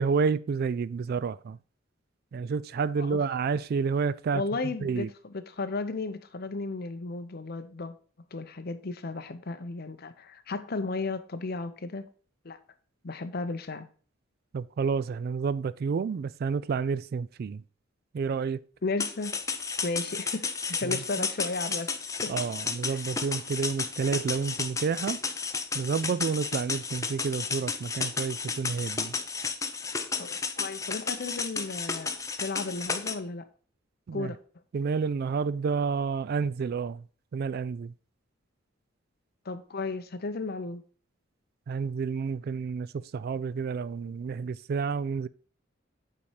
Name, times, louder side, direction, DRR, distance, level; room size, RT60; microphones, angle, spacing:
voice 1, 0.0-1.6 2.3-4.4 4.8-5.1 14.5-17.6 18.1-18.6 20.8-21.0 22.3-25.2 25.7-29.1 34.1-34.3 34.7-37.0 37.3-37.9 41.7-42.9 43.1-45.3, right 5 dB, 50° right, 0.3 m, -29 dB
voice 2, 2.9-3.3 4.3-7.9 8.3-12.1 12.4-12.6 13.0-13.9 18.8-19.4 19.8-22.0 22.2-22.3 22.9-23.0 30.2-32.1 32.4-33.5 34.1-34.4 39.4-40.8, left 3 dB, 50° left, 0.7 m, -34 dB
sound 1, 19.0-33.1, left 5 dB, 15° left, 0.5 m, -33 dB
8.5 x 4.2 x 4.8 m
head